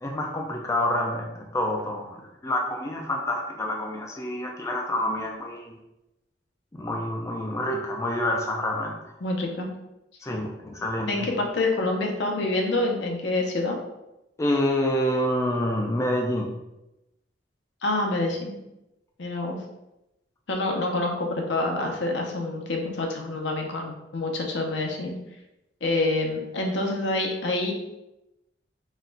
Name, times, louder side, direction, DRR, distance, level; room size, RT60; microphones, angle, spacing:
voice 1, 0.0-5.8 6.7-8.9 10.2-11.3 14.4-16.5, left 1 dB, 15° left, 1 dB, 0.4 m, -27 dB
voice 2, 9.2-9.7 11.1-13.8 17.8-18.6 19.2-19.6 20.5-25.2 25.8-27.7, left 2 dB, 75° left, 1 dB, 0.7 m, -27 dB
4.1 x 2.3 x 3.8 m, 0.92 s
head